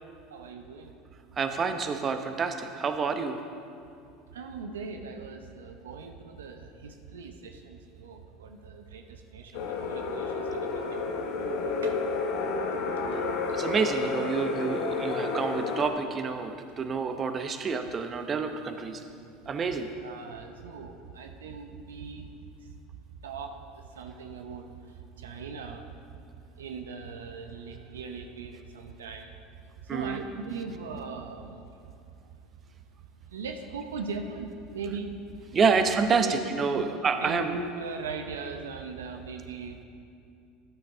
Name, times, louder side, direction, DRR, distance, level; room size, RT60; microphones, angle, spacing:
voice 1, 0.3-0.9 4.3-11.0 11.8-12.0 13.1-13.2 19.7-22.3 23.2-23.5 23.9-25.9 26.6-29.3 29.8-31.8 33.3-35.3 35.7-35.9 36.2-36.4 36.7-36.9 37.2-39.8, right 4 dB, 90° right, 5 dB, 0.7 m, -39 dB
voice 2, 1.4-3.4 13.1-13.2 13.5-19.0 19.5-19.9 29.9-30.2 35.5-37.6, right 5 dB, 35° right, 7 dB, 0.9 m, -28 dB
sound 1, 9.5-15.9, left 4 dB, 70° left, 1.2 m, -30 dB
13.5 x 8.9 x 3.6 m, 2.5 s
hypercardioid pair, 85°, 0 cm